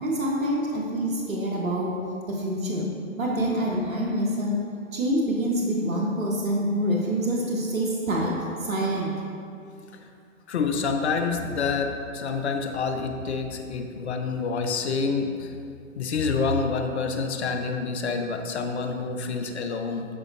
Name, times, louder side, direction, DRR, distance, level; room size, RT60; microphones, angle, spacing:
voice 1, 0.0-1.9 2.3-2.8 3.2-4.6 4.9-8.3 8.6-9.1, right 1 dB, 75° right, -2 dB, 1.3 m, -26 dB
voice 2, 10.5-15.5 16.0-20.1, left 4 dB, 55° left, 6 dB, 0.8 m, -27 dB
11.0 x 5.0 x 2.7 m, 2.5 s
figure-of-eight pair, 135°, 41 cm